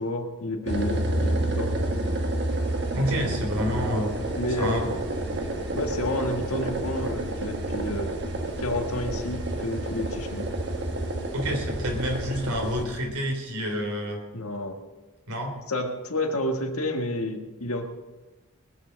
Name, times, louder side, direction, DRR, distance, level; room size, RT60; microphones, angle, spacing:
voice 1, 0.0-1.7 4.3-4.8 5.7-8.1 8.6-10.5 14.3-14.8 15.7-17.9, left 1 dB, 75° left, 4 dB, 1.6 m, -30 dB
sound 1, 0.7-12.8, right 1 dB, 50° right, 1.4 m, -29 dB
voice 2, 2.9-4.3 4.6-4.9 11.3-14.2 15.3-15.5, equal, 75° right, 2 dB, 3.1 m, -28 dB
20.5 x 7.4 x 6.5 m, 1.2 s
head